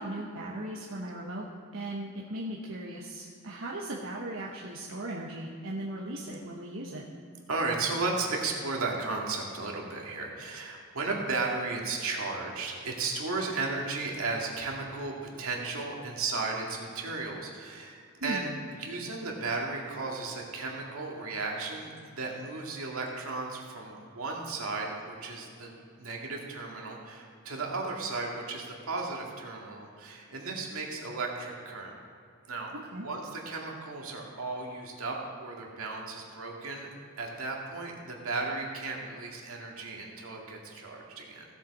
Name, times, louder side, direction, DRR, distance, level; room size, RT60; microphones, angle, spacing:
voice 1, 0.0-1.5 1.7-7.0 18.2-18.5 32.9-33.0, right 1 dB, 70° right, -4 dB, 1.1 m, -37 dB
voice 2, 7.5-25.7 26.0-31.9 32.5-32.7 33.0-36.9 37.2-41.4, right 3 dB, 85° right, -1 dB, 2.0 m, -35 dB
16.0 x 7.4 x 4.2 m, 2.3 s
head